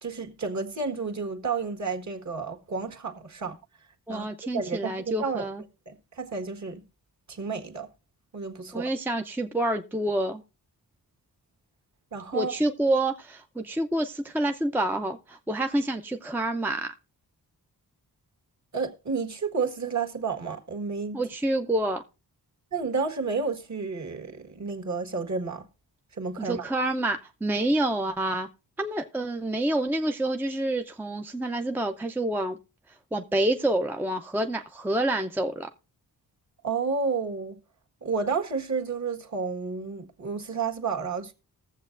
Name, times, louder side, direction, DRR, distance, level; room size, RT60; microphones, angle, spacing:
voice 1, 0.0-3.6 4.1-4.3 4.5-5.5 5.9-6.8 7.3-7.9 8.3-8.9 12.1-12.5 18.7-21.2 22.7-25.7 26.1-26.6 36.6-37.6 38.0-41.3, right 5 dB, 45° right, 1.6 m, -31 dB
voice 2, 4.1-5.6 8.7-10.4 12.3-16.9 21.1-22.0 26.4-28.5 28.8-32.6 33.1-35.7, right 1 dB, 5° right, 0.5 m, -28 dB
20.5 x 7.4 x 2.5 m
wide cardioid pair, 135°, 39 cm